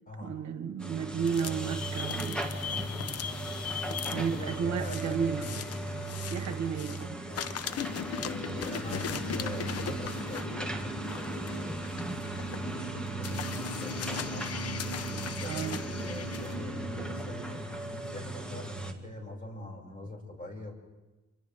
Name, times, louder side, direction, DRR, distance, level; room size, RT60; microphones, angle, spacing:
voice 1, 0.2-2.4 3.9-5.4 6.1-7.3 15.4-15.8, right 7 dB, 65° right, 1.4 m, -33 dB
sound 1, 0.8-18.9, right 2 dB, 5° left, 2.0 m, -37 dB
sound 2, 1.2-7.1 7.3-16.6, left 8 dB, 55° left, 0.9 m, -39 dB
voice 2, 4.0-5.6 7.3-7.5 8.2-12.0 12.5-14.5 15.0-20.7, left 1 dB, 30° left, 6.2 m, -43 dB
Bowed string instrument, 12.0-18.6, left 1 dB, 85° left, 2.9 m, -44 dB
29.0 x 25.0 x 3.6 m
cardioid pair, 90°, 30 cm